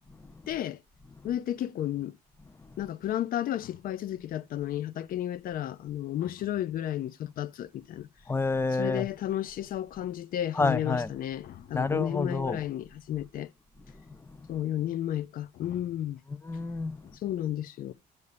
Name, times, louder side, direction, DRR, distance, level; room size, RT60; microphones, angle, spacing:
voice 1, 0.5-0.8 1.2-2.1 2.8-8.1 8.7-13.5 14.5-16.2 17.0-17.9, left 12 dB, 60° left, 0.6 m, -32 dB
voice 2, 8.3-9.1 10.5-11.1 11.7-12.6 14.4-14.5 16.4-17.0, left 3 dB, 15° left, 0.5 m, -28 dB
9.5 x 3.2 x 6.7 m
cardioid pair, 110°, 17 cm